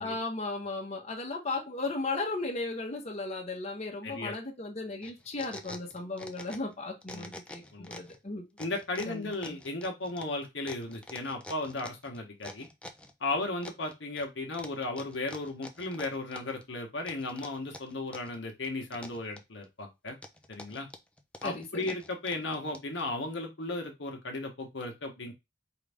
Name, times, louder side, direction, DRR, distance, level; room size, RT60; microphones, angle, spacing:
voice 1, 0.0-8.4 9.1-9.6 21.4-21.9, left 3 dB, 35° left, 0 dB, 1.1 m, -36 dB
voice 2, 4.0-4.3 7.1-7.3 7.7-8.0 8.6-12.7 13.2-20.2 20.5-20.9 21.4-25.3, left 2 dB, 75° left, 2 dB, 1.1 m, -35 dB
sound 1, 5.0-6.7 7.0-8.2 8.6-13.1 13.6-14.3 14.5-16.6 17.1-18.4 18.6-19.6 20.1-23.0, left 1 dB, 5° left, 0.5 m, -46 dB
4.8 x 2.6 x 3.4 m, 0.22 s
head